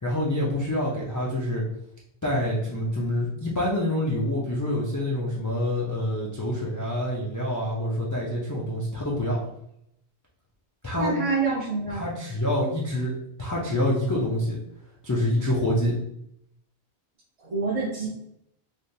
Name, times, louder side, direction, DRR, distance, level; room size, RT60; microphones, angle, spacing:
voice 1, 0.0-1.6 2.2-9.4 10.8-11.1 11.9-14.6 15.0-16.0, left 1 dB, 25° left, -5 dB, 0.4 m, -26 dB
voice 2, 10.9-12.1 17.4-18.1, right 3 dB, 40° right, -8 dB, 0.7 m, -27 dB
3.3 x 2.4 x 2.7 m, 0.77 s
omnidirectional pair, 1.1 m